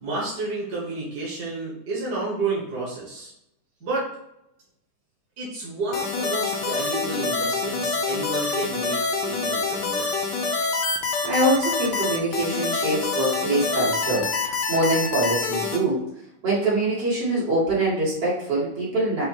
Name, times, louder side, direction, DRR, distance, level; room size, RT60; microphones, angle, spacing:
voice 1, 0.0-3.3 3.8-4.1 5.4-9.0 9.2-10.2, right 3 dB, 65° right, -6 dB, 1.8 m, -30 dB
sound 1, 5.9-15.8, left 4 dB, 75° left, 1.4 m, -26 dB
voice 2, 11.2-16.0 16.4-19.3, right 1 dB, 80° right, -7 dB, 2.5 m, -24 dB
5.5 x 2.1 x 4.6 m, 0.83 s
omnidirectional pair, 1.9 m